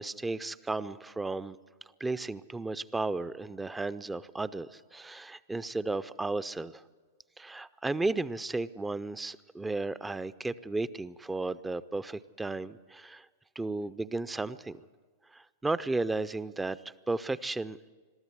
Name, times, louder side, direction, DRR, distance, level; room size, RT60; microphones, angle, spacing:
voice 1, 0.0-1.6 2.0-6.8 7.4-13.3 13.6-14.8 15.3-17.8, right 3 dB, 10° right, 14 dB, 0.5 m, -34 dB
22.0 x 13.5 x 9.5 m, 1.4 s
figure-of-eight pair, 100°, 0 cm